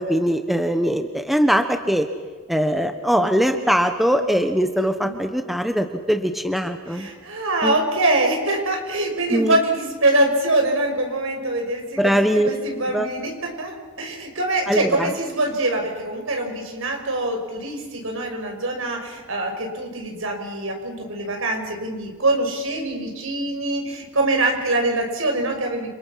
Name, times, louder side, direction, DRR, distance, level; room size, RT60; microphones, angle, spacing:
voice 1, 0.0-2.1 2.5-7.1 7.6-7.8 9.3-9.6 12.0-12.5 12.9-13.1 14.7-15.1, equal, ahead, 6 dB, 1.3 m, -21 dB
voice 2, 6.9-25.9, right 2 dB, 70° right, 3 dB, 6.0 m, -24 dB
29.5 x 27.5 x 5.9 m, 1.4 s
head